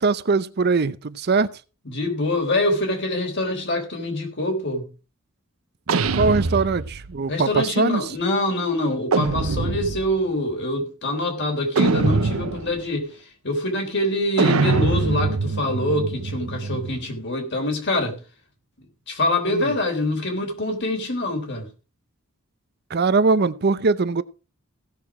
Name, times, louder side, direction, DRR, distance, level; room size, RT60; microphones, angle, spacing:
voice 1, 0.0-1.5 6.1-8.1 19.5-19.7 22.9-24.2, right 4 dB, 50° right, 0.6 m, -21 dB
voice 2, 1.9-4.9 7.3-13.1 13.4-18.2 19.1-21.7, left 1 dB, 55° left, 3.6 m, -25 dB
sound 1, 5.9-7.2 9.1-10.2 11.8-12.8 14.4-17.1, right 4 dB, 90° right, 0.8 m, -23 dB
16.0 x 6.7 x 4.8 m
head